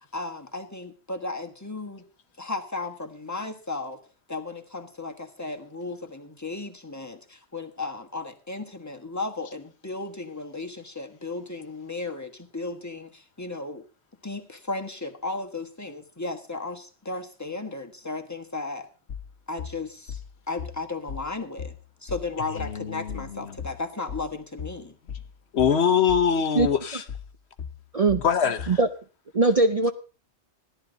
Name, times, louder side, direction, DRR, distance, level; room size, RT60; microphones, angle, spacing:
voice 1, 0.1-2.0 2.4-4.0 4.3-13.8 14.2-18.9 19.5-20.2 20.5-21.8 22.0-25.0, left 3 dB, 15° left, 1.4 m, -35 dB
sound 1, 19.1-28.9, left 7 dB, 85° left, 1.4 m, -38 dB
voice 2, 22.6-23.5 25.5-27.0 28.2-28.8, left 7 dB, 70° left, 1.1 m, -23 dB
voice 3, 29.3-29.9, right 3 dB, 40° right, 0.7 m, -20 dB
16.5 x 11.5 x 3.9 m
omnidirectional pair, 1.2 m